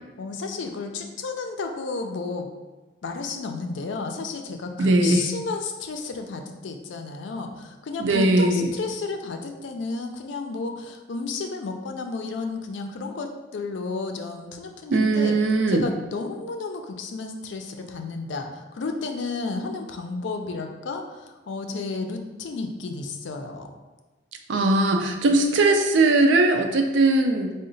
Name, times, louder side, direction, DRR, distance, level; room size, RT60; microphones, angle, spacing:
voice 1, 0.2-2.5 3.0-15.4 15.7-23.7, left 3 dB, 80° left, 4 dB, 0.4 m, -32 dB
voice 2, 4.8-5.2 8.0-8.7 14.9-15.9 24.5-27.5, right 2 dB, 80° right, 4 dB, 0.4 m, -20 dB
3.8 x 2.1 x 3.8 m, 1.2 s
head